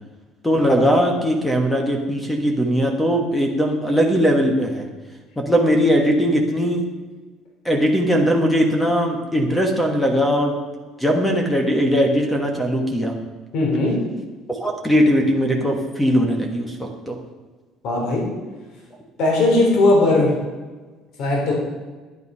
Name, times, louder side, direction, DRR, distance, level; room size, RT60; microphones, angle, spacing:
voice 1, 0.4-4.8 5.4-6.8 7.6-10.5 11.0-13.1 14.6-17.2, equal, 5° left, 3 dB, 1.3 m, -19 dB
voice 2, 13.5-14.0 17.8-18.2 19.2-20.3 21.2-21.5, left 2 dB, 50° left, -1 dB, 3.5 m, -18 dB
11.5 x 9.7 x 5.6 m, 1.3 s
cardioid pair, 165°, 0 cm